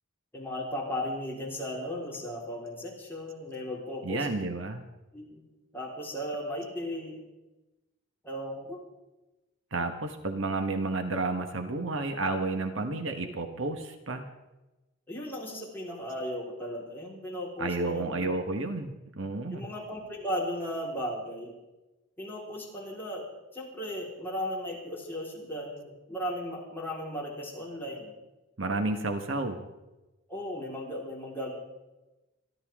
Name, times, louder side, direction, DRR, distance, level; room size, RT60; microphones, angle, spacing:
voice 1, 0.3-4.3 5.1-5.4 5.7-7.2 8.2-8.8 15.1-18.3 19.5-21.5 22.2-23.3 23.5-28.1 30.3-31.5, equal, 10° left, -5 dB, 4.2 m, -36 dB
voice 2, 4.0-4.8 9.7-14.3 17.6-19.7 28.6-29.6, right 2 dB, 65° right, 6 dB, 1.4 m, -31 dB
26.0 x 12.0 x 3.7 m, 1.0 s
head